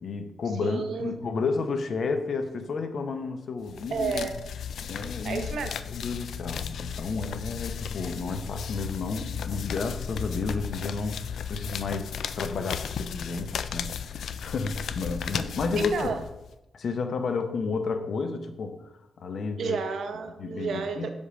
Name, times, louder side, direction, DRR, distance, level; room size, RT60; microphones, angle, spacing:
voice 1, 0.0-4.3 4.8-5.4 5.9-16.1 16.7-18.9 19.2-19.8 20.4-21.1, left 4 dB, 55° left, 8 dB, 0.7 m, -31 dB
voice 2, 0.6-1.4 3.9-4.3 5.2-5.8 15.8-16.2 19.6-21.1, right 5 dB, 70° right, 7 dB, 0.8 m, -31 dB
sound 1, 3.7-16.5, left 7 dB, 85° left, 0.4 m, -35 dB
6.6 x 5.3 x 5.0 m, 0.92 s
wide cardioid pair, 175°, 0 cm